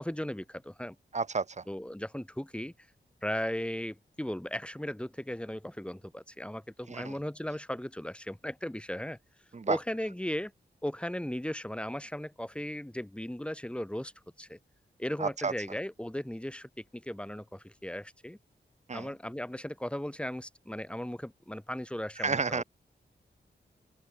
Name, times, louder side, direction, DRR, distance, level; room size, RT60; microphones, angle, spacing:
voice 1, 0.0-1.0 1.7-2.7 3.2-9.2 9.7-10.5 10.8-14.1 14.4-14.6 15.0-18.4 18.9-22.6, left 1 dB, 5° left, 2.0 m, -37 dB
voice 2, 1.1-1.6 6.9-7.1 9.5-9.8 15.2-15.5 18.9-19.1 22.2-22.6, right 4 dB, 40° right, 1.0 m, -31 dB
open air
wide cardioid pair, 95°, 19 cm